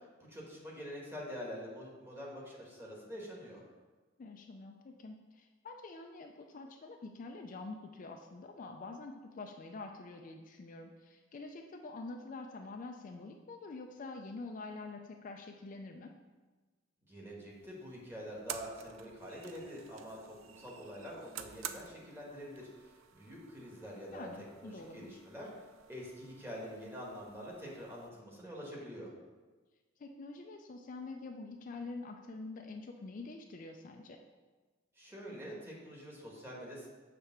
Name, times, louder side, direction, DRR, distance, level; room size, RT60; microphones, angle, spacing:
voice 1, 0.0-3.6 17.1-24.3 24.6-25.5 25.9-29.1 35.0-36.9, equal, 10° right, -4 dB, 1.4 m, -46 dB
voice 2, 4.2-16.1 24.1-25.2 30.0-34.2, left 3 dB, 40° left, 4 dB, 0.4 m, -46 dB
sound 1, 17.5-28.1, right 9 dB, 80° right, 0.4 m, -51 dB
6.4 x 3.3 x 5.8 m, 1.3 s
head